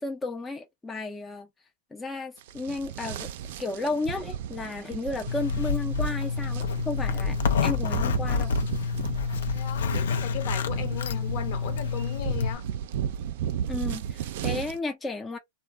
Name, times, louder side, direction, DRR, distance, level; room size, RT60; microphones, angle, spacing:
voice 1, 0.0-1.5 1.9-3.3 3.6-8.5 13.7-15.4, left 3 dB, 10° left, 0.4 m, -33 dB
sound 1, 2.4-14.8, right 9 dB, 65° right, 0.3 m, -35 dB
Zipper (clothing), 5.3-12.5, left 5 dB, 90° left, 0.4 m, -28 dB
voice 2, 9.5-12.7, left 12 dB, 55° left, 0.7 m, -37 dB
2.0 x 2.0 x 3.4 m
supercardioid pair, 145°, 0 cm